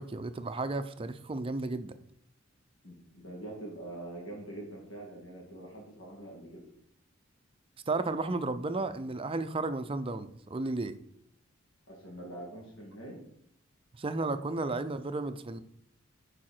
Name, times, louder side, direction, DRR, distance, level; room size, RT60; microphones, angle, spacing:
voice 1, 0.0-1.9 7.9-11.0 13.9-15.6, right 3 dB, 30° right, 10 dB, 0.5 m, -33 dB
voice 2, 2.8-6.6 11.9-13.2, right 1 dB, 75° left, -2 dB, 2.5 m, -44 dB
11.0 x 4.9 x 4.4 m, 0.73 s
head